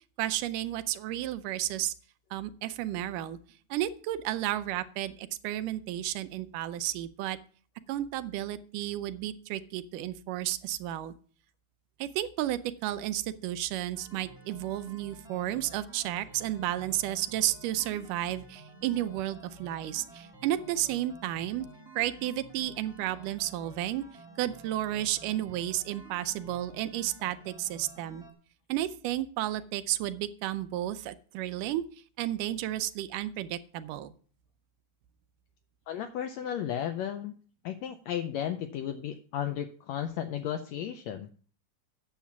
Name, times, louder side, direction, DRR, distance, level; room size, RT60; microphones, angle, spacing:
voice 1, 0.2-1.9 2.3-3.4 3.7-7.4 7.9-11.1 12.0-21.7 22.0-24.1 24.4-28.3 28.7-31.9 32.2-34.1, right 13 dB, 80° right, 12 dB, 2.2 m, -32 dB
sound 1, 13.9-28.3, right 2 dB, ahead, 1.2 m, -52 dB
voice 2, 35.9-37.3 37.6-41.3, left 10 dB, 80° left, 8 dB, 1.6 m, -34 dB
9.2 x 7.3 x 5.7 m, 0.43 s
omnidirectional pair, 3.8 m